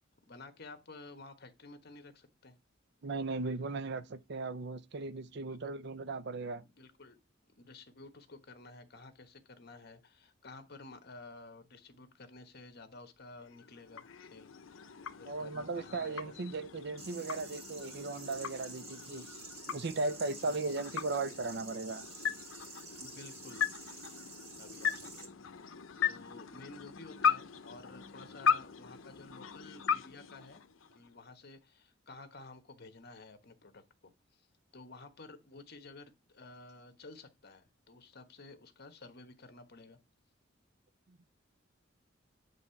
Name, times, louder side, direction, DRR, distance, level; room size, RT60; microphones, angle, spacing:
voice 1, 0.3-2.6 5.6-5.7 6.6-7.2 7.5-14.5 15.2-16.4 20.4-20.8 23.0-23.8 24.6-30.6 30.9-34.5 34.7-40.0, left 3 dB, 55° left, 1.3 m, -52 dB
voice 2, 3.0-6.6 15.3-19.3 19.7-22.1 41.1-41.3, right 3 dB, 55° right, 0.6 m, -37 dB
sound 1, 13.4-31.2, left 7 dB, 80° left, 0.7 m, -38 dB
sound 2, 17.0-25.3, right 3 dB, 30° right, 2.1 m, -50 dB
9.5 x 3.5 x 5.7 m
head